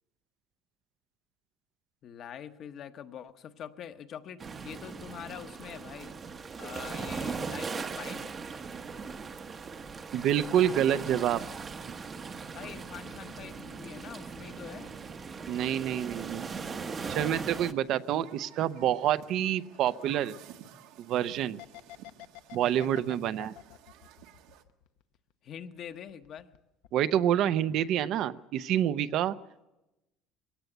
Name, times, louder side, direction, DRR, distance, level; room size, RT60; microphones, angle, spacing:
voice 1, 2.0-6.2 6.5-8.4 12.5-14.9 25.4-26.5, left 9 dB, 45° left, 9 dB, 1.1 m, -44 dB
sound 1, 4.4-17.7, right 5 dB, 25° right, 0.9 m, -39 dB
voice 2, 10.1-11.5 11.8-11.9 15.5-16.5 17.1-20.4 21.1-21.6 22.5-23.5 26.9-29.4, right 11 dB, 55° right, 13 dB, 0.7 m, -27 dB
Human group actions, 16.9-24.6, right 11 dB, 85° right, 1.4 m, -54 dB
sound 2, 21.6-25.3 25.6-26.6 26.8-27.0, left 16 dB, 85° left, 1.0 m, -48 dB
21.5 x 17.5 x 8.0 m, 0.99 s
cardioid pair, 150°, 0 cm